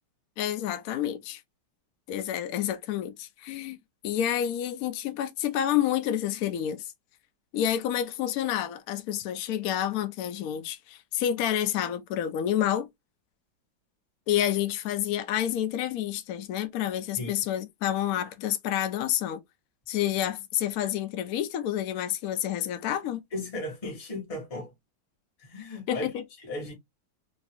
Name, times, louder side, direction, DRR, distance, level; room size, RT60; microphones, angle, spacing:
voice 1, 0.4-1.4 2.1-3.8 4.0-6.8 7.5-12.9 14.3-19.4 19.9-23.2 25.9-26.2, left 11 dB, 85° left, 0.7 m, -29 dB
voice 2, 23.3-24.7 25.4-26.1 26.4-26.7, left 1 dB, 25° left, 1.0 m, -36 dB
3.0 x 2.7 x 2.9 m
omnidirectional pair, 2.1 m